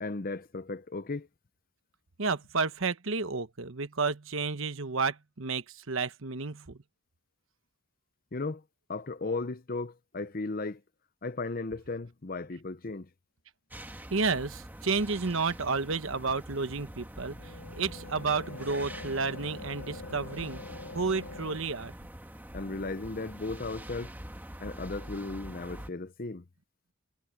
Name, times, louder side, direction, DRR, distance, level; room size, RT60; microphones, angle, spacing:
voice 1, 0.0-1.3 8.3-8.6 8.9-10.8 11.2-13.1 22.5-24.1 24.6-26.4, left 3 dB, 40° left, 0.7 m, -35 dB
voice 2, 2.2-6.8 14.1-20.6 20.9-21.9, right 4 dB, 70° right, 1.1 m, -31 dB
sound 1, 13.7-25.9, equal, 10° right, 1.7 m, -45 dB
sound 2, 17.2-21.6, left 3 dB, 75° left, 3.6 m, -45 dB
head